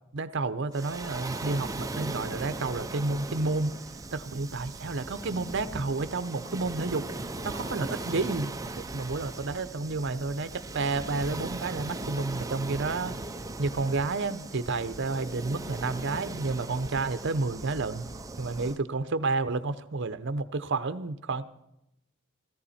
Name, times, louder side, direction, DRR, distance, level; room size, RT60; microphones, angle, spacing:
voice 1, 0.1-3.7 4.1-7.1 7.4-13.2 13.6-18.1 18.4-21.4, right 3 dB, 55° right, 12 dB, 0.8 m, -30 dB
Waves surf, 0.7-18.8, right 2 dB, 15° right, 0.6 m, -38 dB
16.5 x 14.5 x 4.3 m, 0.84 s
head